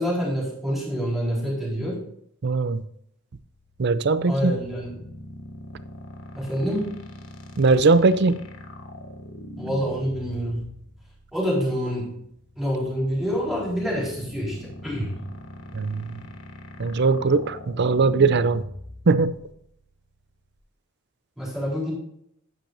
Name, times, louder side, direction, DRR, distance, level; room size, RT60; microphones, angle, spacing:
voice 1, 0.0-2.0 4.3-5.0 6.3-7.0 9.6-10.6 11.3-12.1 12.6-15.2 21.4-21.9, equal, ahead, -6 dB, 4.0 m, -27 dB
voice 2, 2.4-2.8 3.8-4.5 7.6-8.4 15.7-16.2 16.8-18.6 19.1-19.3, right 4 dB, 50° right, 14 dB, 0.5 m, -20 dB
sound 1, 3.4-20.6, left 1 dB, 60° left, 1.4 m, -42 dB
11.5 x 9.1 x 2.6 m, 0.73 s
head